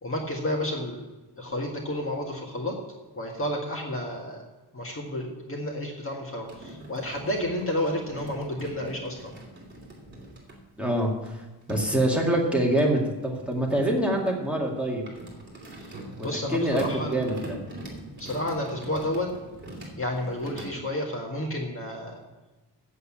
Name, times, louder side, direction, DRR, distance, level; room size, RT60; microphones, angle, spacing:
voice 1, 0.0-1.0 1.4-2.7 3.1-4.4 4.7-9.4 15.8-15.9 16.2-17.3 18.1-19.3 20.0-22.2, left 1 dB, 30° left, 0 dB, 1.8 m, -31 dB
sound 1, 6.4-10.6 11.2-20.6, right 1 dB, 25° right, 3.1 m, -43 dB
voice 2, 10.8-11.4 11.7-15.0 16.2-17.6, right 1 dB, 5° right, -2 dB, 2.1 m, -25 dB
8.1 x 8.0 x 8.6 m, 1.2 s
wide cardioid pair, 135°, 43 cm